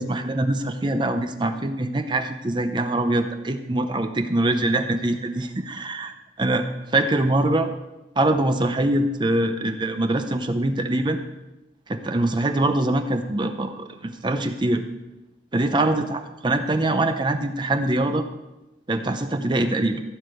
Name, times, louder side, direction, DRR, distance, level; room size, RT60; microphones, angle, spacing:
voice 1, 0.0-6.1 6.4-6.6 6.9-7.7 8.2-11.2 11.9-14.8 15.5-18.3 18.9-20.0, right 1 dB, 25° right, 7 dB, 0.7 m, -23 dB
15.0 x 5.1 x 7.7 m, 1.0 s
head